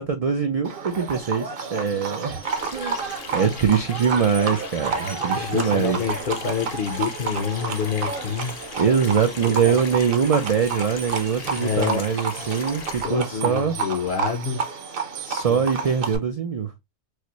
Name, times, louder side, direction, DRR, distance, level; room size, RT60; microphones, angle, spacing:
voice 1, 0.0-2.4 2.7-3.0 3.3-6.0 8.8-13.8 15.2-16.7, right 6 dB, 70° right, 0.3 m, -23 dB
Livestock farm animals working animals, 0.6-16.2, right 5 dB, 55° right, 0.8 m, -30 dB
Water tap faucet / Sink (filling or washing), 2.4-13.1, left 7 dB, 85° left, 1.1 m, -39 dB
voice 2, 5.3-8.5 9.4-9.8 11.6-12.0 12.4-12.5 13.0-14.6 15.4-15.6, left 6 dB, 50° left, 0.7 m, -27 dB
4.7 x 2.0 x 2.8 m
omnidirectional pair, 1.3 m